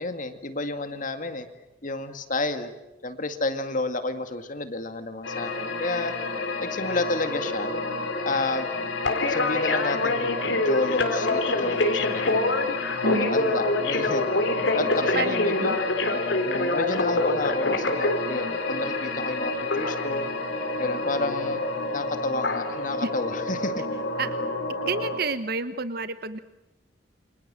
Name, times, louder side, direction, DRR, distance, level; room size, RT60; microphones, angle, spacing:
voice 1, 0.0-1.5 1.8-2.7 3.0-6.1 6.6-7.7 8.3-8.7 9.3-12.7 13.0-14.3 14.7-15.8 16.1-20.3 20.8-21.6 21.9-23.8, left 2 dB, 45° left, 8 dB, 2.2 m, -30 dB
sound 1, 5.2-25.2, left 2 dB, 85° left, 3.9 m, -26 dB
voice 2, 13.0-13.4 15.1-15.8 23.0-23.1 24.2-24.4 24.8-26.4, right 3 dB, 55° right, 12 dB, 1.1 m, -29 dB
29.0 x 27.0 x 7.6 m, 0.98 s
head